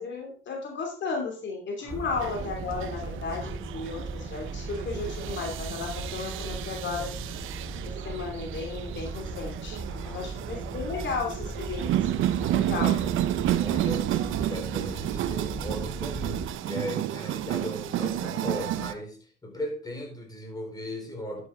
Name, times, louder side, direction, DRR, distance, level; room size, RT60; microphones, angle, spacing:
voice 1, 0.0-7.1 7.8-9.8 10.0-11.9 12.4-12.9, left 4 dB, 65° left, 2 dB, 2.9 m, -34 dB
sound 1, 1.9-16.5, right 2 dB, 30° right, 3.0 m, -37 dB
sound 2, 2.1-18.9, right 13 dB, 85° right, 0.7 m, -31 dB
voice 2, 9.9-10.2 12.0-13.1 13.6-21.5, left 1 dB, 20° left, 2 dB, 4.2 m, -38 dB
12.0 x 8.2 x 3.7 m, 0.39 s
cardioid pair, 90°, 20 cm